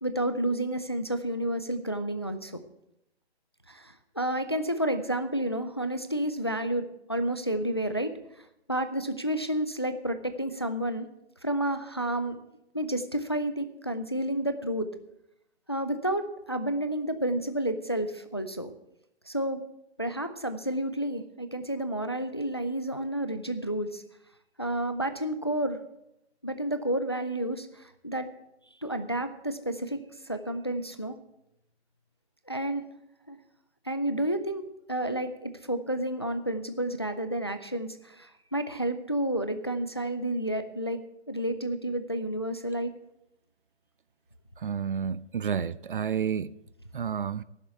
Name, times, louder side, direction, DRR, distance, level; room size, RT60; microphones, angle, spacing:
voice 1, 0.0-2.5 3.7-8.1 8.7-11.1 11.4-12.4 12.7-14.9 15.7-18.7 19.3-19.6 20.0-24.0 24.6-25.8 26.4-28.3 28.8-31.2 32.5-32.8 33.3-33.4 33.9-34.6 34.9-42.9, right 1 dB, 25° left, 0.4 m, -30 dB
voice 2, 44.6-46.5 46.9-47.4, right 7 dB, 50° right, 0.5 m, -30 dB
12.5 x 7.3 x 8.1 m
hypercardioid pair, 175°, 33 cm